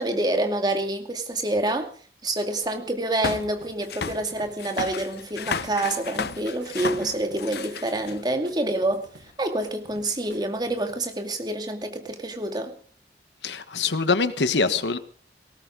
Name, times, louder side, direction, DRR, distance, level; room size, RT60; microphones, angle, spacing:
voice 1, 0.0-1.9 2.2-9.1 9.4-12.7, right 1 dB, 25° right, 5 dB, 2.4 m, -27 dB
sound 1, 3.2-8.5 9.3-9.4 10.1-10.2, left 5 dB, 60° left, 0.7 m, -33 dB
sound 2, 3.6-11.0, right 2 dB, 85° right, 6.1 m, -51 dB
voice 2, 13.4-15.0, left 4 dB, 90° left, 12 dB, 1.3 m, -24 dB
18.5 x 18.5 x 3.9 m, 0.43 s
head